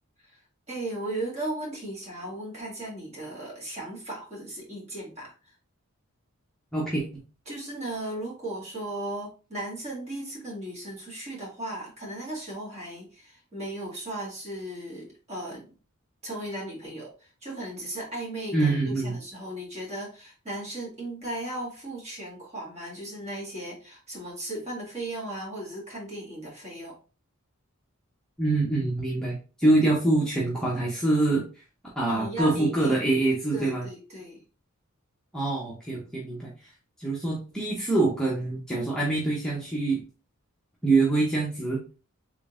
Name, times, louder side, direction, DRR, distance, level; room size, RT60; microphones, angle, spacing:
voice 1, 0.7-5.3 7.4-15.7 16.2-26.9 32.1-33.1 33.5-34.4, right 1 dB, 30° right, -4 dB, 1.7 m, -36 dB
voice 2, 6.7-7.0 18.5-19.2 28.4-31.4 32.0-33.9 35.3-36.5 37.0-40.0 40.8-41.8, right 2 dB, 5° left, -5 dB, 0.7 m, -25 dB
3.7 x 3.5 x 2.4 m, 0.35 s
head